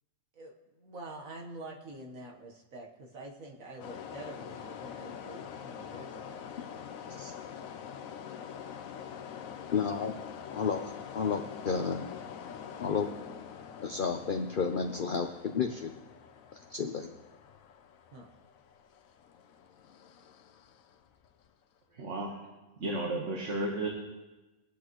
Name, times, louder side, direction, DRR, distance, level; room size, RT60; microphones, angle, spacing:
voice 1, 0.3-6.4 18.1-18.3, right 2 dB, 85° right, 0 dB, 1.8 m, -46 dB
sound 1, 3.8-21.5, left 8 dB, 90° left, 1.1 m, -45 dB
voice 2, 9.7-10.1 10.5-12.1 12.8-13.1 13.8-15.9 16.5-17.1, left 6 dB, 50° left, 4 dB, 0.7 m, -32 dB
voice 3, 21.9-22.4 22.8-23.9, right 2 dB, 65° right, 0 dB, 1.7 m, -33 dB
22.5 x 8.4 x 3.1 m, 1.1 s
omnidirectional pair, 1.4 m